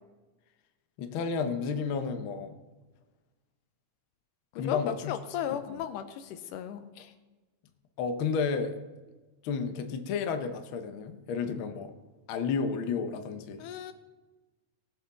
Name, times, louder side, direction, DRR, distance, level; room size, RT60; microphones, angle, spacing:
voice 1, 1.0-2.5 4.5-5.2 5.7-5.8 7.0-7.1 8.0-8.8 9.4-11.9 12.3-13.7, left 5 dB, 70° left, 7 dB, 1.2 m, -32 dB
voice 2, 4.5-6.9 13.6-13.9, left 9 dB, 90° left, 9 dB, 2.4 m, -36 dB
19.0 x 7.8 x 4.1 m, 1.2 s
omnidirectional pair, 3.6 m